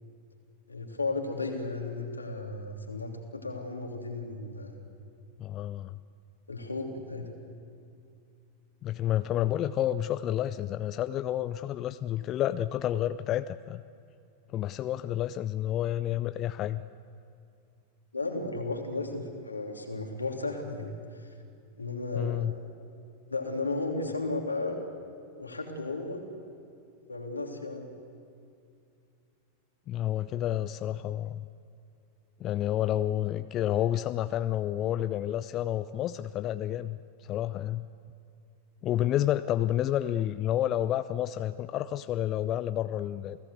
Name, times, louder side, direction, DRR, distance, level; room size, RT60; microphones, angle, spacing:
voice 1, 0.7-4.7 6.5-7.3 18.1-20.9 21.2-21.3 21.8-22.6 23.3-24.8 25.3-26.2 27.1-27.9, left 3 dB, 80° left, 2 dB, 3.1 m, -34 dB
voice 2, 5.4-5.9 8.8-13.8 14.5-16.8 22.1-22.5 29.9-31.5 32.4-37.0 37.3-37.8 38.8-43.4, left 12 dB, 35° left, 13 dB, 0.5 m, -30 dB
29.0 x 17.5 x 8.2 m, 2.5 s
figure-of-eight pair, 90°, 0 cm